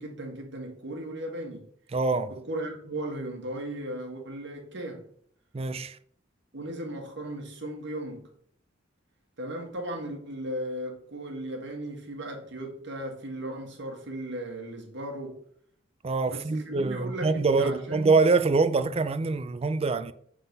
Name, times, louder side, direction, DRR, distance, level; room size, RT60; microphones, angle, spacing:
voice 1, 0.0-1.7 2.3-5.0 6.5-8.3 9.4-15.4 16.3-18.1, right 1 dB, 65° right, 1.7 m, -36 dB
voice 2, 1.9-2.3 5.5-6.0 16.0-20.1, right 3 dB, 30° right, 0.4 m, -24 dB
7.7 x 4.0 x 5.3 m
head